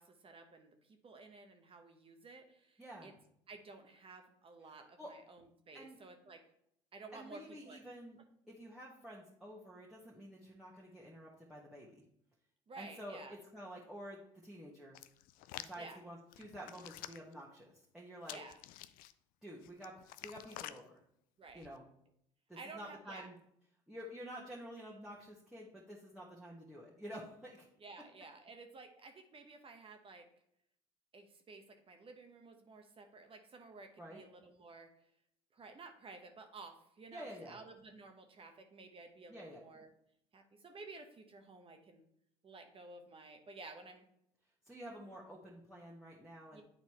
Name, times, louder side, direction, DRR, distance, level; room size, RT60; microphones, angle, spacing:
voice 1, 0.0-3.1 3.5-6.4 6.9-7.9 12.7-13.4 15.8-16.0 18.3-18.6 21.4-21.7 22.5-23.3 27.8-30.2 31.1-34.9 35.5-39.9 40.3-42.1 42.4-44.1 46.5-46.6, right 3 dB, 35° right, 5 dB, 1.0 m, -53 dB
voice 2, 2.8-3.1 5.0-5.1 5.7-6.0 7.1-8.2 8.5-12.0 12.8-15.0 15.5-18.4 19.4-19.9 20.2-21.0 21.5-21.8 22.5-23.3 23.9-27.6 34.0-34.2 37.1-37.6 39.3-39.6 44.6-46.6, equal, 5° right, -5 dB, 1.5 m, -50 dB
Hands, 14.9-15.8 16.3-17.3 18.2-19.1 19.6-20.8 21.5-21.8, left 14 dB, 65° left, 0.4 m, -49 dB
9.1 x 4.1 x 3.1 m, 0.72 s
hypercardioid pair, 70°, 16 cm